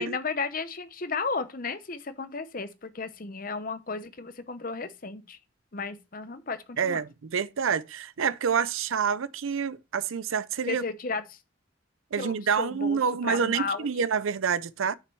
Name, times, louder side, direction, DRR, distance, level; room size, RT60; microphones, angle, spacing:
voice 1, 0.0-5.4 5.7-7.0 10.7-11.4 12.2-13.9, left 4 dB, 40° left, 0.8 m, -34 dB
voice 2, 6.8-10.8 12.1-14.9, right 6 dB, 75° right, 0.5 m, -27 dB
6.7 x 6.0 x 4.5 m
head